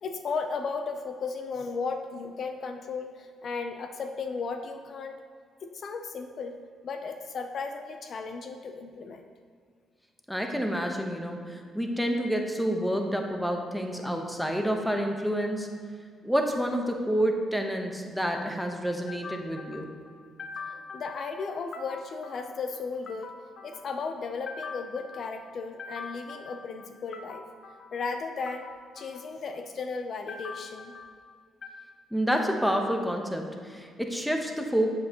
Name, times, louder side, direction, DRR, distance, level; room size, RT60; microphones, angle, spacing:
voice 1, 0.0-5.2 5.6-6.6 6.8-9.3 19.1-31.2 31.6-31.8, left 4 dB, 55° left, 6 dB, 0.6 m, -35 dB
voice 2, 10.3-15.7 16.2-19.9 32.1-34.9, equal, ahead, 3 dB, 1.0 m, -28 dB
8.2 x 7.6 x 3.0 m, 2.1 s
cardioid pair, 90°, 0 cm